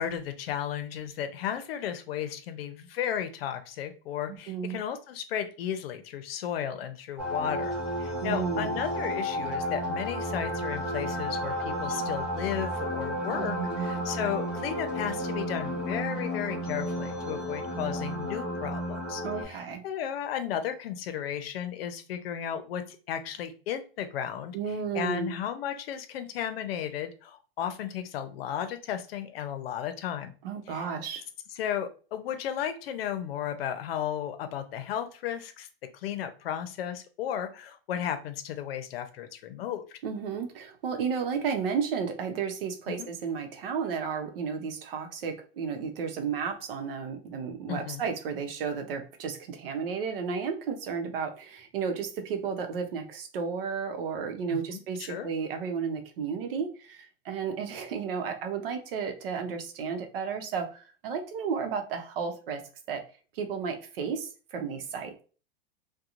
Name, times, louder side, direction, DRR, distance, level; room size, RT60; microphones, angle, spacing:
voice 1, 0.0-7.7 8.0-24.6 24.9-30.3 30.7-30.9 31.5-35.7 35.9-40.0 42.9-43.1 47.7-48.0 54.5-55.3, left 9 dB, 85° left, 9 dB, 0.6 m, -34 dB
voice 2, 4.3-4.8 8.2-8.7 13.3-14.0 19.2-19.8 24.5-25.3 30.4-31.2 40.0-62.6 62.9-63.0 63.4-65.1, right 6 dB, 75° right, 6 dB, 0.7 m, -33 dB
sound 1, 7.2-19.4, equal, 5° right, 0.4 m, -32 dB
2.9 x 2.2 x 2.5 m, 0.37 s
supercardioid pair, 165°, 29 cm